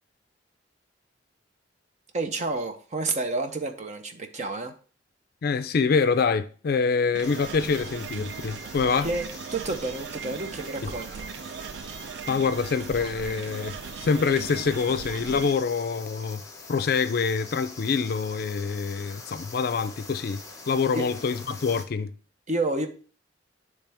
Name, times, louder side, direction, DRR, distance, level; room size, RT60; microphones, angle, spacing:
voice 1, 2.1-4.7 9.0-9.3 9.5-11.3 20.9-21.0 22.5-22.9, right 2 dB, 40° right, 0.7 m, -29 dB
voice 2, 5.4-9.1 10.8-10.9 12.3-16.4 16.7-22.1, left 5 dB, 55° left, 0.4 m, -26 dB
sound 1, 7.1-15.5, right 7 dB, 70° right, 0.3 m, -39 dB
sound 2, 7.2-21.8, left 3 dB, 15° left, 0.8 m, -44 dB
10.0 x 3.3 x 3.4 m
head